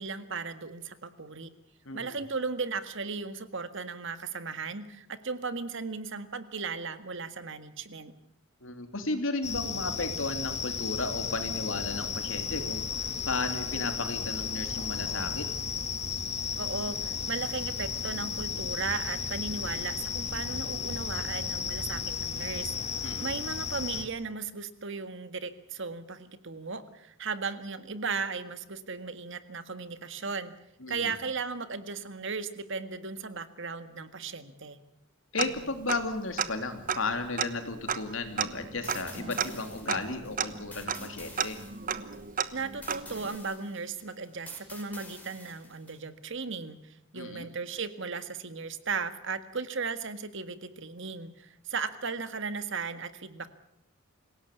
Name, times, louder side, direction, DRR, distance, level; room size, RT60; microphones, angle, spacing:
voice 1, 0.0-1.5 1.9-8.1 16.6-22.7 23.2-30.5 30.9-34.8 42.5-53.5, right 4 dB, 60° right, 11 dB, 1.8 m, -36 dB
voice 2, 1.8-2.2 8.6-12.9 13.3-15.5 23.0-23.3 30.8-31.1 35.3-41.6 47.1-47.5, left 3 dB, 70° left, 7 dB, 3.1 m, -34 dB
sound 1, 9.4-24.0, left 6 dB, 30° left, 2.0 m, -34 dB
Tick-tock, 35.4-36.1 36.4-36.5 36.9-43.4, right 7 dB, 40° right, 1.1 m, -34 dB
puff drums, 38.8-46.0, left 2 dB, 10° left, 5.4 m, -49 dB
26.5 x 17.0 x 8.4 m, 0.76 s
head